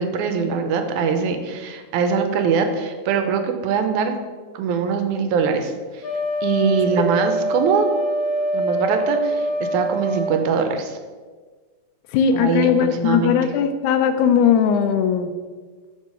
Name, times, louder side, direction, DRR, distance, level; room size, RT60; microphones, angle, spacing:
voice 1, 0.0-4.1 4.5-6.0 6.4-7.9 8.5-11.0 12.3-13.5, right 6 dB, 85° right, 6 dB, 2.0 m, -22 dB
Wind instrument woodwind instrument, 6.0-10.4, right 1 dB, 65° left, 0.6 m, -24 dB
voice 2, 12.1-15.3, left 7 dB, 80° left, 9 dB, 1.9 m, -18 dB
6.0 x 4.8 x 5.5 m, 1.5 s
omnidirectional pair, 3.5 m